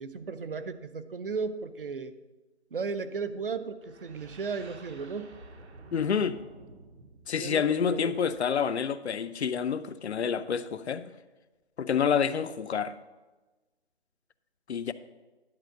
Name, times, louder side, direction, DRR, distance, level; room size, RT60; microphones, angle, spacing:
voice 1, 0.0-2.1 2.7-5.3 7.4-8.2, right 5 dB, 50° right, 11 dB, 0.7 m, -35 dB
sound 1, 3.8-8.6, right 2 dB, 70° right, 1.1 m, -51 dB
voice 2, 5.9-6.4 7.3-11.0 11.8-13.0 14.7-14.9, left 7 dB, 70° left, 14 dB, 0.6 m, -28 dB
10.5 x 4.4 x 7.8 m, 1.2 s
hypercardioid pair, 175°, 35 cm